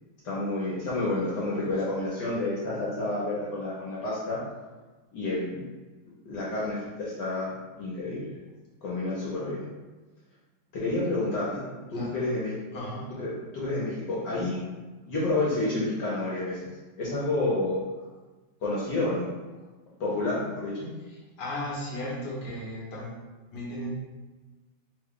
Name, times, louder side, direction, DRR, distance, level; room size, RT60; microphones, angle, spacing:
voice 1, 0.2-4.4 5.1-5.7 6.3-7.5 7.8-8.4 8.8-9.7 10.7-11.5 11.9-12.5 13.2-13.3 13.5-14.6 15.0-16.7 17.0-17.8 18.6-19.3 20.0-20.9, left 2 dB, 65° left, -6 dB, 1.3 m, -29 dB
voice 2, 12.7-13.1 21.4-23.2 23.5-23.9, left 1 dB, 40° left, -6 dB, 1.0 m, -35 dB
3.5 x 2.3 x 3.6 m, 1.2 s
omnidirectional pair, 2.2 m